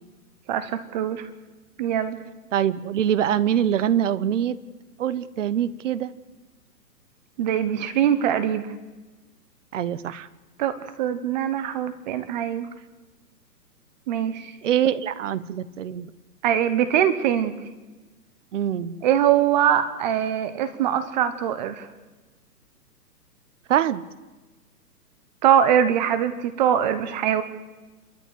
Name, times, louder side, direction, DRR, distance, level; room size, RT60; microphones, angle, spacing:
voice 1, 0.5-1.3 1.8-2.2 7.4-8.7 10.6-12.7 14.1-14.6 16.4-17.6 19.0-21.9 25.4-27.4, right 9 dB, 30° right, 11 dB, 1.1 m, -22 dB
voice 2, 2.5-4.6 5.0-6.1 9.7-10.3 14.6-16.1 18.5-19.0 23.7-24.0, right 10 dB, 50° right, 16 dB, 1.2 m, -24 dB
29.0 x 13.5 x 7.9 m, 1.2 s
hypercardioid pair, 150°, 49 cm